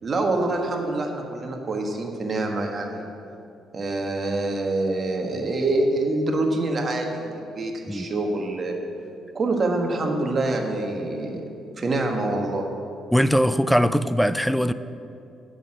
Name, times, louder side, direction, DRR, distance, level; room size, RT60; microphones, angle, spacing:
voice 1, 0.0-3.1 3.7-8.8 9.3-11.4 11.8-12.6, right 2 dB, 40° right, 2 dB, 1.5 m, -25 dB
voice 2, 13.1-14.7, equal, ahead, 14 dB, 0.4 m, -20 dB
8.1 x 6.4 x 7.7 m, 2.6 s
supercardioid pair, 75°, 0 cm